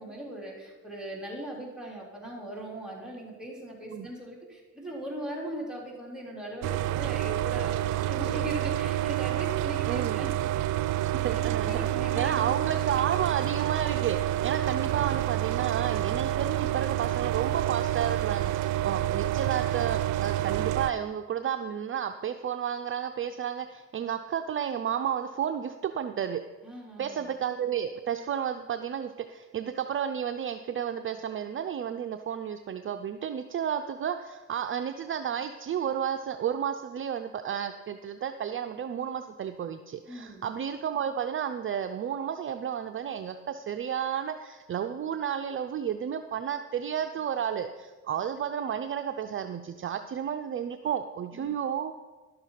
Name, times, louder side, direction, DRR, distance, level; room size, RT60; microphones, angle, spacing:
voice 1, 0.0-10.3 10.9-12.5 26.6-27.2 40.1-40.4 51.3-51.5, right 1 dB, ahead, -3 dB, 3.4 m, -39 dB
sound 1, 6.6-20.9, right 14 dB, 90° right, 0.5 m, -28 dB
voice 2, 9.9-10.2 11.2-11.9 12.1-26.4 27.0-51.9, right 8 dB, 45° right, 7 dB, 0.6 m, -32 dB
11.5 x 6.8 x 5.7 m, 1.2 s
cardioid pair, 90°, 30 cm